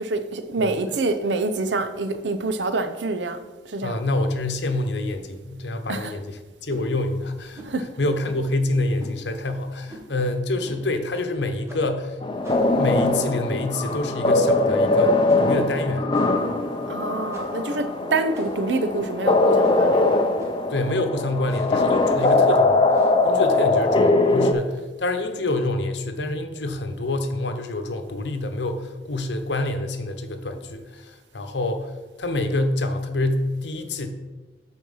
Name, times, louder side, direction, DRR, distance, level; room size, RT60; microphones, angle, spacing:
voice 1, 0.0-4.1 5.9-6.2 7.6-7.9 16.9-20.1, right 3 dB, 85° right, 0.7 m, -26 dB
voice 2, 3.8-7.6 8.0-12.2 12.8-16.1 16.5-16.7 20.7-22.8 23.2-31.9 32.2-34.1, left 2 dB, 80° left, 0.8 m, -27 dB
sound 1, 6.7-6.9 7.5-7.8 8.2-8.5 9.0-9.2 9.9-10.2 10.6-10.8 11.1-11.3 11.7-12.0 12.4-13.3 13.8-14.1 14.5-14.7 15.3-15.6 16.1-16.5 17.3-17.7 18.3-18.8 19.6-19.9 20.4-20.7 21.4-21.8 22.2-22.5 22.9-23.2, equal, 15° right, 1.5 m, -42 dB
sound 2, 12.2-24.5, left 2 dB, 30° left, 0.5 m, -21 dB
8.4 x 4.5 x 5.5 m
head